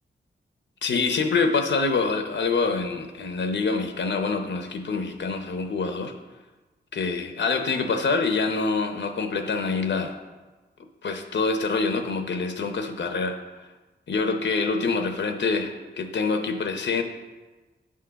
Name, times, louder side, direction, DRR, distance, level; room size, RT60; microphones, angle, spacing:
voice 1, 0.8-6.1 6.9-10.2 11.0-13.4 14.1-17.0, left 4 dB, 75° left, 6 dB, 0.8 m, -26 dB
9.2 x 3.8 x 6.8 m, 1.2 s
wide cardioid pair, 115°, 19 cm